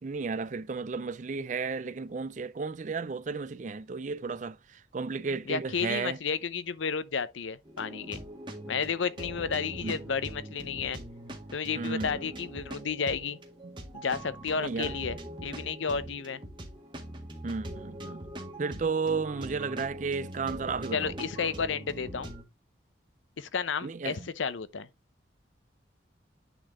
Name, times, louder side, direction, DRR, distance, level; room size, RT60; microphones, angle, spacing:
voice 1, 0.0-6.2 9.8-10.0 11.7-12.2 13.6-13.8 14.6-14.9 17.4-18.3 18.6-21.1 23.8-24.3, right 4 dB, 40° right, 0.4 m, -33 dB
voice 2, 5.5-8.2 8.7-11.0 11.5-13.4 13.9-16.4 20.9-22.3 23.4-24.9, left 5 dB, 85° left, 0.6 m, -32 dB
sound 1, 7.7-22.4, right 1 dB, 25° right, 1.5 m, -42 dB
9.0 x 4.1 x 3.6 m
head